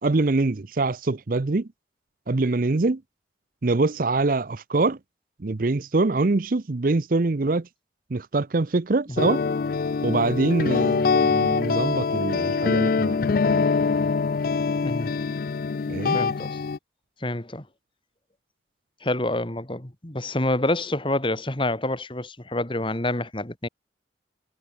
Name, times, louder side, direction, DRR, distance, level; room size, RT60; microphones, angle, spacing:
voice 1, 0.0-1.7 2.3-3.0 3.6-5.0 5.4-7.7 8.1-9.4 10.0-13.6 15.9-16.2, right 3 dB, 50° right, 0.6 m, -24 dB
sound 1, 9.2-16.8, left 5 dB, 50° left, 0.4 m, -24 dB
voice 2, 14.8-15.1 16.1-16.6 17.2-17.6 19.0-23.7, left 1 dB, 30° left, 1.8 m, -27 dB
head